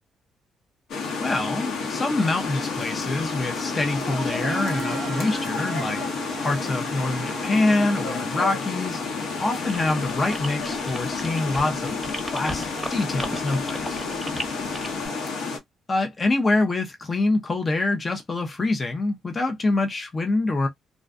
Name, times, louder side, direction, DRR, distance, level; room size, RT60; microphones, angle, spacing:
sound 1, 0.9-15.6, left 4 dB, 80° left, 1.0 m, -30 dB
voice 1, 1.2-6.0 6.4-9.0 9.4-12.0 12.3-14.0 15.9-20.7, left 2 dB, 30° left, 0.5 m, -25 dB
Wind instrument woodwind instrument, 3.7-8.5, right 3 dB, 25° right, 0.3 m, -36 dB
sound 2, 9.7-15.1, equal, ahead, 0.8 m, -35 dB
2.5 x 2.1 x 2.4 m
cardioid pair, 90°, 0 cm